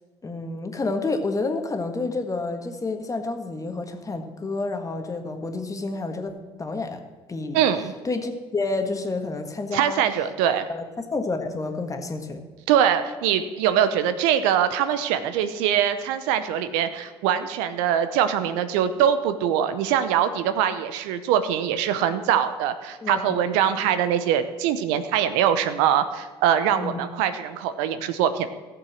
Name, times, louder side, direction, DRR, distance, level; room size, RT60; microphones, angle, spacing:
voice 1, 0.2-6.3 6.6-7.0 7.3-7.6 8.0-10.0 10.7-12.4 23.0-23.6 26.7-27.0, left 3 dB, 25° left, 6 dB, 1.6 m, -29 dB
voice 2, 7.5-7.9 9.7-10.7 12.7-28.5, right 9 dB, 75° right, 11 dB, 0.8 m, -23 dB
14.5 x 7.0 x 6.4 m, 1.3 s
hypercardioid pair, 65°, 13 cm